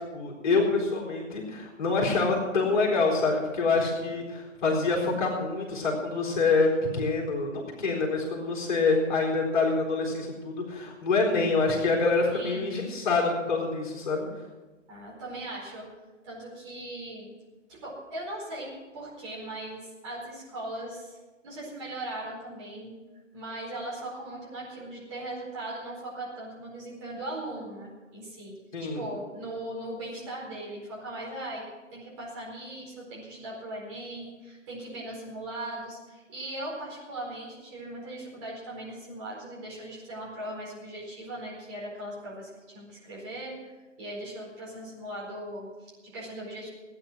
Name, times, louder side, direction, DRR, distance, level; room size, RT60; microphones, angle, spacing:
voice 1, 0.1-14.3 28.7-29.0, left 3 dB, 40° left, -2 dB, 4.2 m, -26 dB
voice 2, 12.3-12.7 14.9-15.9 16.2-17.3 17.7-21.2 21.4-23.0 23.3-28.5 28.8-31.6 31.9-46.7, right 1 dB, 25° right, -5 dB, 4.5 m, -39 dB
17.5 x 9.8 x 6.2 m, 1.2 s
figure-of-eight pair, 140°, 38 cm